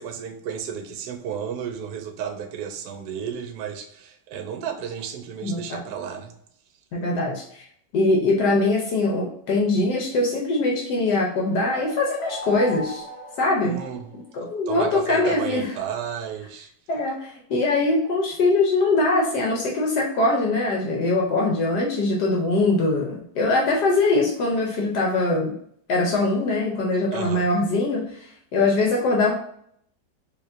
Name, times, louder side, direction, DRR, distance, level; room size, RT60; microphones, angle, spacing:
voice 1, 0.0-6.3 13.6-14.1 14.7-16.7 27.1-27.5, right 8 dB, 75° right, 5 dB, 1.0 m, -33 dB
voice 2, 5.4-5.8 6.9-7.6 7.9-13.0 13.4-13.8 14.3-15.7 16.9-25.6 25.9-29.3, left 2 dB, 70° left, -1 dB, 1.2 m, -22 dB
sound 1, 11.4-14.3, right 1 dB, 10° right, 0.4 m, -37 dB
4.6 x 2.9 x 2.5 m, 0.67 s
omnidirectional pair, 2.0 m